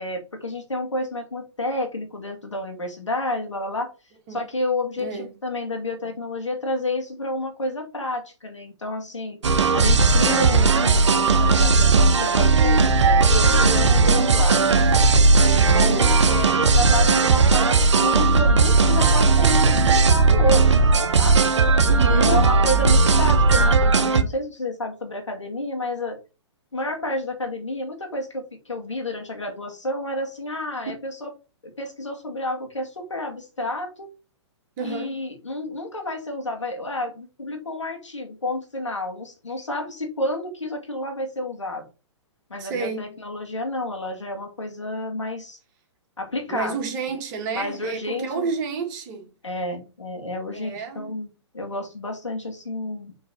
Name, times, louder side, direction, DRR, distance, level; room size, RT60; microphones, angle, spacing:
voice 1, 0.0-3.9 4.3-9.4 9.7-14.6 15.4-21.4 22.0-26.2 26.7-31.3 31.8-34.1 34.8-41.9 42.5-45.6 46.2-46.8 47.5-48.5 49.4-53.1, left 1 dB, 80° left, 2.2 m, -30 dB
voice 2, 5.0-5.3 14.0-14.4 15.8-16.1 21.8-22.4 34.8-35.2 42.6-43.1 46.5-49.3 50.5-51.1, right 5 dB, 40° right, 2.1 m, -30 dB
sound 1, 9.4-24.2, right 3 dB, 75° right, 0.8 m, -17 dB
6.5 x 3.9 x 4.1 m
figure-of-eight pair, 120°, 15 cm